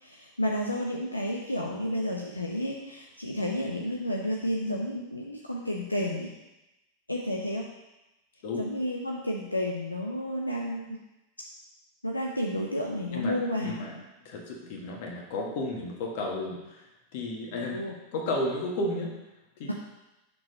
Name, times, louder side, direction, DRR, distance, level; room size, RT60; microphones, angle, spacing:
voice 1, 0.0-6.3 7.1-7.7 8.6-11.0 12.0-13.8 17.5-17.9, left 1 dB, 85° left, -1 dB, 0.7 m, -31 dB
voice 2, 13.1-13.9 14.2-16.9 17.1-17.8 18.1-19.2 19.6-19.8, left 2 dB, 50° left, -1 dB, 1.7 m, -33 dB
6.4 x 4.7 x 5.3 m, 0.99 s
figure-of-eight pair, 90°, 0 cm